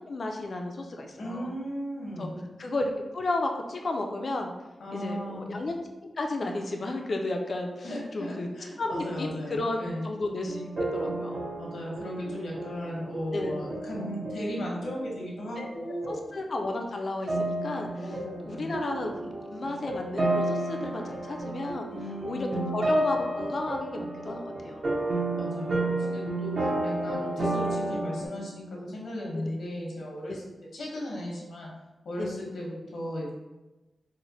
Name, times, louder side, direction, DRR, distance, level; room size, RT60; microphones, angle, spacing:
voice 1, 0.1-1.5 2.2-2.3 2.6-4.5 4.9-5.8 6.0-8.5 8.8-11.5 13.3-13.5 15.6-15.7 16.1-18.2 18.4-21.9 22.2-24.8 27.8-28.0 29.3-29.5 30.3-30.4 32.2-32.4, left 2 dB, 50° left, 3 dB, 0.3 m, -33 dB
voice 2, 1.2-2.4 4.8-5.5 7.8-10.1 11.6-16.2 18.0-18.8 21.9-22.7 25.1-30.4 30.7-31.7 32.0-33.3, left 1 dB, 90° left, -3 dB, 0.9 m, -36 dB
sound 1, 8.9-15.8 16.0-16.3 17.3-28.3, right 2 dB, 50° right, 0.7 m, -32 dB
3.1 x 2.1 x 3.9 m, 1.1 s
wide cardioid pair, 110°, 0 cm